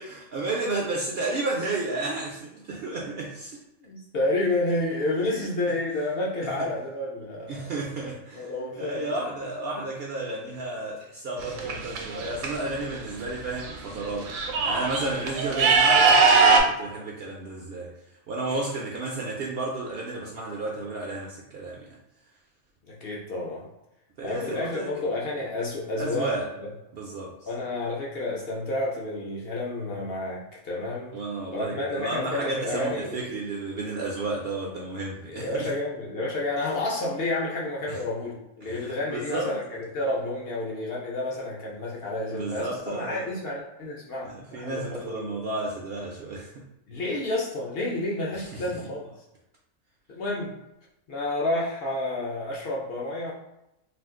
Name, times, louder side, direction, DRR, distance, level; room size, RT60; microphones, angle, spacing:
voice 1, 0.0-3.6 5.2-5.5 7.5-14.3 14.6-17.9 18.3-22.0 24.2-24.9 26.0-26.5 26.9-27.3 31.1-35.7 37.9-38.0 38.6-39.5 42.3-43.3 44.2-46.6 48.5-48.6, right 2 dB, 65° right, -2 dB, 0.6 m, -32 dB
voice 2, 3.8-7.8 8.3-9.2 18.5-18.6 22.8-23.6 24.2-26.7 27.5-31.2 31.5-33.2 35.3-45.4 46.9-49.1 50.1-50.6 51.1-53.3, left 2 dB, 60° left, -3 dB, 0.6 m, -30 dB
sound 1, 11.4-12.5 13.6-13.7 14.0-16.6, right 4 dB, 80° right, 1.0 m, -20 dB
2.5 x 2.4 x 3.5 m, 0.89 s
omnidirectional pair, 1.4 m